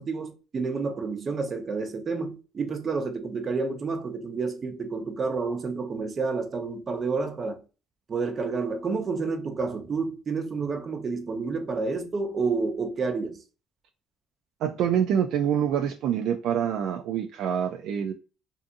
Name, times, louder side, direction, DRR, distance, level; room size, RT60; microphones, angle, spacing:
voice 1, 0.0-7.6 8.1-13.4, right 4 dB, 40° right, 0.7 m, -29 dB
voice 2, 14.6-18.1, right 9 dB, 75° right, 0.3 m, -26 dB
2.6 x 2.5 x 2.5 m
supercardioid pair, 80°, 0 cm